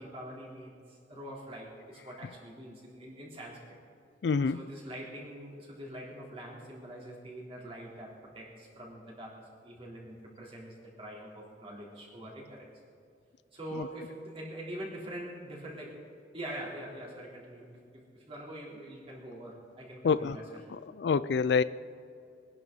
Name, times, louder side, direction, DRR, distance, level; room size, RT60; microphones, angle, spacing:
voice 1, 0.0-3.8 4.5-12.7 13.5-16.0 16.3-20.4, right 1 dB, 30° right, -4 dB, 3.3 m, -44 dB
voice 2, 4.2-4.7 13.7-13.9 20.0-20.4 20.7-21.6, left 5 dB, 65° left, 16 dB, 0.4 m, -27 dB
22.5 x 11.0 x 3.9 m, 2.6 s
head